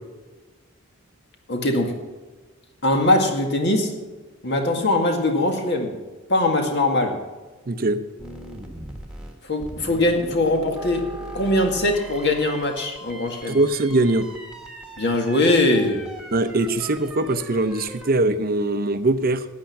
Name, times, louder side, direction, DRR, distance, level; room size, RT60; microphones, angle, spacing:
voice 1, 1.5-2.0 2.8-4.0 4.4-5.9 6.3-7.2 9.4-11.1 11.3-13.6 15.0-16.0, left 1 dB, 55° left, 3 dB, 2.1 m, -21 dB
voice 2, 7.7-8.0 13.5-14.3 16.3-19.5, right 2 dB, 45° right, 10 dB, 0.7 m, -21 dB
sound 1, 8.2-18.1, equal, 5° right, 1.5 m, -39 dB
13.0 x 9.0 x 5.9 m, 1.3 s
head